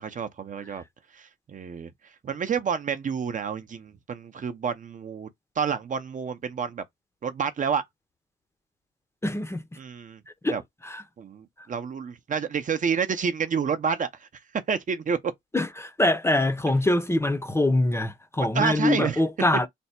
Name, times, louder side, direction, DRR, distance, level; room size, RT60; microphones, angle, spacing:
voice 1, 0.2-0.8 1.1-1.9 2.2-5.3 5.6-6.8 7.2-7.8 9.8-10.2 10.5-10.6 11.2-14.3 14.7-15.3 18.5-19.2, right 6 dB, 40° right, 0.7 m, -29 dB
voice 2, 9.2-9.6 10.4-10.6 10.8-11.0 11.6-11.7 15.5-19.7, left 2 dB, 15° left, 0.7 m, -24 dB
3.4 x 2.1 x 4.2 m
cardioid pair, 90°, 20 cm